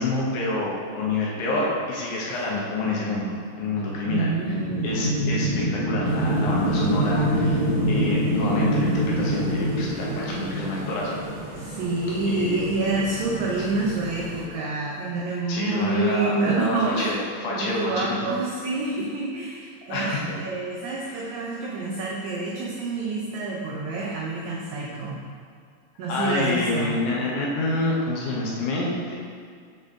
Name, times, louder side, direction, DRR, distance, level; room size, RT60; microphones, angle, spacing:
voice 1, 0.0-4.3 4.8-11.2 12.3-12.6 13.2-13.6 15.5-18.3 19.9-20.2 26.1-29.2, left 2 dB, 75° left, -4 dB, 2.0 m, -28 dB
sound 1, 3.7-11.3, right 1 dB, 45° left, 2.0 m, -25 dB
voice 2, 4.1-5.3 11.5-17.2 17.5-25.2 26.0-27.0, right 3 dB, 85° right, -2 dB, 1.6 m, -27 dB
sound 2, 6.0-14.5, right 2 dB, 70° right, 1.6 m, -37 dB
6.8 x 4.0 x 3.6 m, 2.1 s
omnidirectional pair, 4.0 m